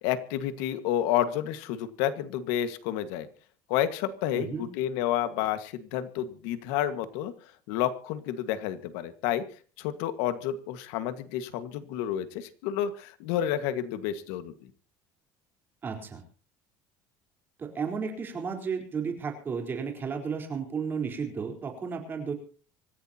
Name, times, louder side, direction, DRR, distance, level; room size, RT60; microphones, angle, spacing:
voice 1, 0.0-3.3 3.7-7.3 7.7-9.4 9.8-14.5, left 11 dB, 85° left, 11 dB, 1.7 m, -30 dB
voice 2, 4.3-4.7 15.8-16.2 17.6-22.3, right 5 dB, 25° right, 3 dB, 4.1 m, -33 dB
26.0 x 15.0 x 2.9 m, 0.38 s
cardioid pair, 160°, 8 cm